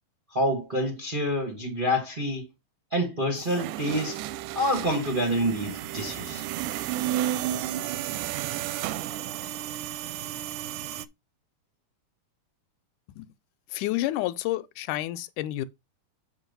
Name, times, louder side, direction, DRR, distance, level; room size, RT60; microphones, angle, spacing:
voice 1, 0.3-2.5 2.9-4.2 4.5-6.5, equal, 30° right, 0.9 m, -27 dB
sound 1, 3.4-11.1, right 12 dB, 90° right, 2.1 m, -32 dB
voice 2, 13.7-15.7, left 15 dB, 85° left, 2.1 m, -29 dB
7.6 x 3.7 x 5.3 m
omnidirectional pair, 3.6 m